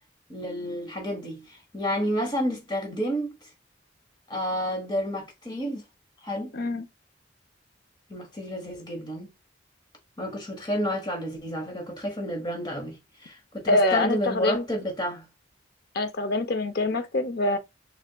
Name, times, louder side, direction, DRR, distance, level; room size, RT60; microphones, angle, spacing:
voice 1, 0.3-3.4 4.3-5.8 6.2-6.5 8.1-9.3 10.2-15.3, equal, 25° left, 1.1 m, -30 dB
voice 2, 6.5-6.9 13.7-14.7 15.9-17.6, left 2 dB, 55° left, 0.6 m, -25 dB
6.6 x 2.3 x 2.2 m
head